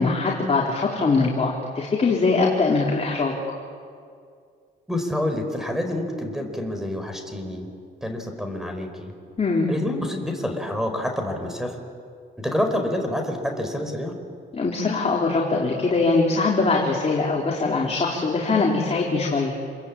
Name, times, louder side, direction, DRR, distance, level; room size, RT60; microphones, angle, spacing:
voice 1, 0.0-3.3 9.4-9.7 14.5-19.5, left 3 dB, 30° left, -2 dB, 4.2 m, -22 dB
voice 2, 4.9-7.7 8.0-9.1 9.7-11.8 12.4-14.1, left 1 dB, ahead, 5 dB, 5.1 m, -27 dB
28.0 x 22.0 x 8.7 m, 2.2 s
cardioid pair, 90°, 20 cm